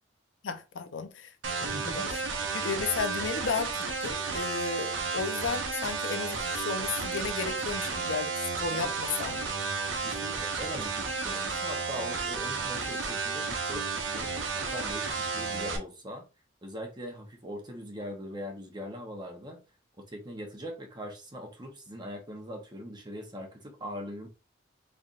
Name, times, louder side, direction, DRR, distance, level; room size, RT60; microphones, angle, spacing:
voice 1, 0.4-1.3 1.6-2.2 2.5-9.6, left 5 dB, 85° left, 0.6 m, -34 dB
sound 1, 1.4-15.8, right 4 dB, 85° right, 0.8 m, -32 dB
voice 2, 1.6-2.1 8.7-8.9 10.0-16.3 16.6-19.6 20.0-24.3, equal, 25° right, 0.8 m, -41 dB
4.0 x 3.2 x 2.4 m
head